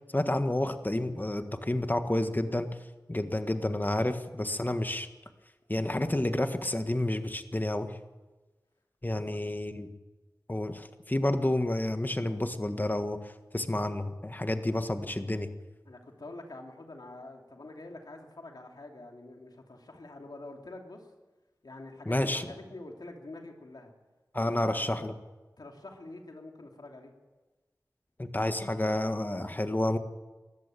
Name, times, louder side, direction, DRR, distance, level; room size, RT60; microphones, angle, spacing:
voice 1, 0.1-2.7 3.1-5.1 5.7-8.0 9.0-9.9 10.5-15.5 22.0-22.5 24.3-25.1 28.2-30.0, left 1 dB, 25° left, 8 dB, 1.6 m, -30 dB
voice 2, 15.8-21.1 21.6-23.9 24.4-25.1 25.6-27.1, left 2 dB, 85° left, 2 dB, 2.8 m, -46 dB
21.0 x 14.0 x 9.1 m, 1.2 s
wide cardioid pair, 50°, 7 cm